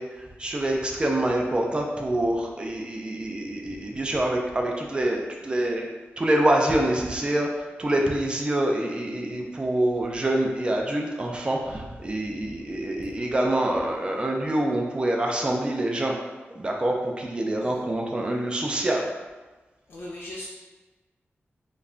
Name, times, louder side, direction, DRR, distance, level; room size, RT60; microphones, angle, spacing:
voice 1, 0.0-5.9 6.2-16.1 16.6-19.1, right 1 dB, 25° right, 0 dB, 0.4 m, -26 dB
voice 2, 19.9-20.5, left 1 dB, 60° left, -7 dB, 0.4 m, -38 dB
2.2 x 2.0 x 3.6 m, 1.2 s
wide cardioid pair, 150°, 4 cm